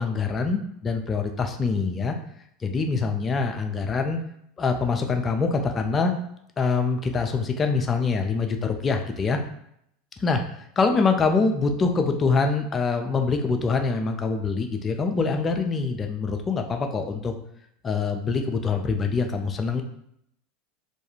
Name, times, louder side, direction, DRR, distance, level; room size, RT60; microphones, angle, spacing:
voice 1, 0.0-2.2 2.6-4.2 4.6-6.1 6.6-9.4 10.2-10.4 10.8-17.3 17.8-19.8, left 4 dB, 30° left, 5 dB, 0.4 m, -24 dB
2.4 x 2.2 x 2.9 m, 0.73 s
hypercardioid pair, 90°, 0 cm